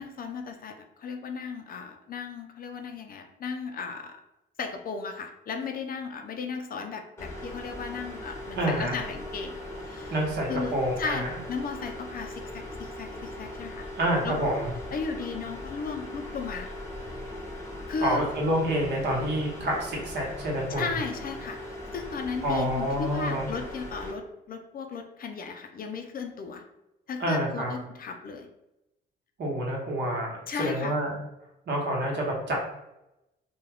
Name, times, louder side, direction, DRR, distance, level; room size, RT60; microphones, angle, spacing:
voice 1, 0.0-4.2 4.6-10.2 10.5-13.9 14.2-14.4 14.9-16.7 17.9-18.3 20.7-26.6 27.1-28.5 30.5-30.9, left 5 dB, 45° left, 5 dB, 0.4 m, -35 dB
sound 1, 7.2-24.1, left 1 dB, 15° left, 0.8 m, -39 dB
voice 2, 8.6-8.9 10.1-11.3 14.0-14.7 18.0-20.8 22.4-23.4 27.2-27.7 29.4-31.2 31.7-32.6, right 1 dB, 60° right, -2 dB, 1.0 m, -28 dB
2.3 x 2.3 x 3.4 m, 0.89 s
cardioid pair, 90°, 20 cm